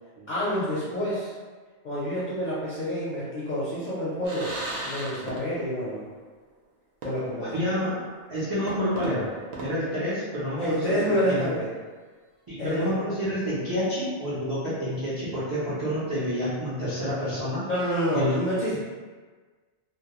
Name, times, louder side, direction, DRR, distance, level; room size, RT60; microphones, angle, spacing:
voice 1, 0.3-1.3 1.8-4.5 4.9-6.0 7.0-7.6 10.6-11.7 12.6-13.0 17.7-18.8, equal, 55° left, -9 dB, 0.5 m, -28 dB
sound 1, 4.2-5.8 6.1-6.2 7.0-7.5 7.9-8.0 8.7-10.7, right 1 dB, 65° right, 0.8 m, -37 dB
voice 2, 7.4-8.0 8.3-9.3 9.6-11.4 12.5-17.6 18.1-18.4 18.7-18.8, equal, 35° right, -11 dB, 0.3 m, -29 dB
2.2 x 2.0 x 2.9 m, 1.4 s
omnidirectional pair, 1.2 m